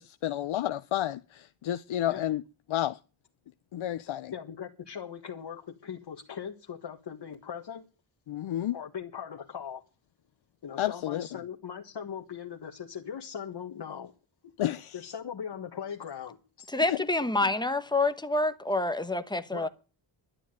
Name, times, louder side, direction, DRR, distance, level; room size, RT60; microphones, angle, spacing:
voice 1, 0.0-2.4 2.7-3.0 3.7-4.3 8.3-8.8 10.8-11.3 14.6-15.0 16.8-17.0, left 12 dB, 80° left, 0.7 m, -30 dB
voice 2, 4.3-7.8 8.7-9.8 10.6-14.1 14.4-14.5 14.9-16.7 19.5-19.7, left 8 dB, 60° left, 1.6 m, -40 dB
voice 3, 16.7-19.7, left 2 dB, 10° left, 1.1 m, -27 dB
12.0 x 9.9 x 8.9 m
wide cardioid pair, 130°, 47 cm